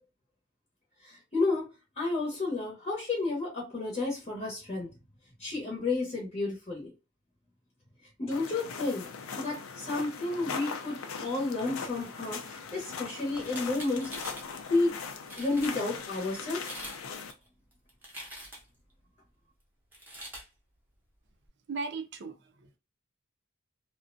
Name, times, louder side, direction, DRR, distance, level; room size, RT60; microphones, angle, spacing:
voice 1, 1.0-1.7 2.0-4.9 5.4-6.9 8.2-9.1 9.3-14.1 14.7-15.0 15.4-16.7, left 3 dB, 30° left, 0.8 m, -31 dB
sound 1, 8.3-17.3, left 5 dB, 85° left, 0.5 m, -40 dB
sound 2, 13.4-14.5 15.0-15.1 15.3-15.7 16.5-17.0 17.3-18.8 19.9-20.5, equal, 10° right, 0.7 m, -44 dB
voice 2, 21.7-22.8, right 4 dB, 55° right, 0.4 m, -37 dB
2.5 x 2.1 x 2.5 m
head